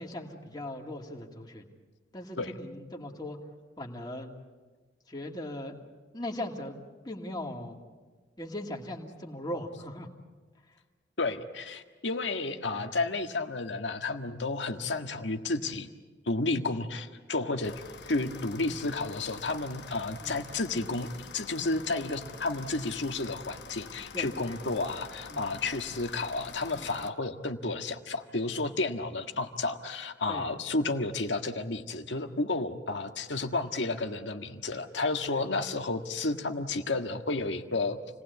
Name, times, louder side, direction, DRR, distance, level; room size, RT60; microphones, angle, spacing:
voice 1, 0.0-1.6 2.1-3.4 3.8-4.3 5.1-5.8 6.1-6.8 7.0-7.8 8.4-10.1 12.7-12.9 20.2-20.4 24.1-24.6 25.3-25.6 26.8-26.9 30.3-30.5 35.3-35.4, left 1 dB, 25° left, 1 dB, 2.5 m, -39 dB
voice 2, 11.2-15.9 16.3-17.7 18.0-38.0, left 3 dB, 90° left, 6 dB, 1.6 m, -32 dB
sound 1, 17.6-27.1, left 5 dB, 65° left, 1.1 m, -47 dB
28.5 x 19.0 x 8.3 m, 1.4 s
head